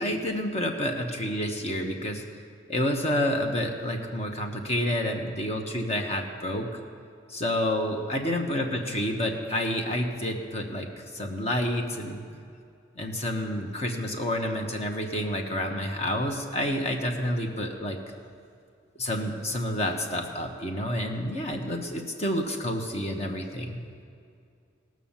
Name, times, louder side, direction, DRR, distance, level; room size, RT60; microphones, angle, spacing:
voice 1, 0.0-2.2 2.7-6.7 7.3-12.2 13.0-18.0 19.0-23.8, left 1 dB, 35° left, 3 dB, 1.1 m, -29 dB
18.0 x 6.3 x 7.2 m, 2.3 s
head